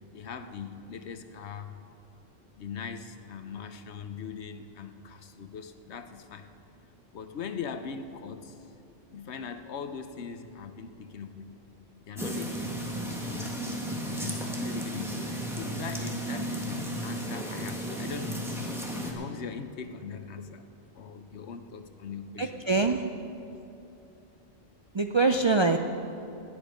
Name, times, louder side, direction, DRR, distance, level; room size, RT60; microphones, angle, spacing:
voice 1, 0.1-1.9 2.6-6.5 7.1-8.7 9.1-11.6 12.1-13.6 14.0-18.4 19.0-20.7 20.9-22.6, left 6 dB, 85° left, 9 dB, 1.1 m, -40 dB
sound 1, 12.2-19.1, right 1 dB, ahead, 1.6 m, -34 dB
voice 2, 22.4-23.0 24.9-25.8, right 3 dB, 45° right, 5 dB, 0.3 m, -24 dB
18.5 x 10.0 x 5.1 m, 2.8 s
omnidirectional pair, 1.1 m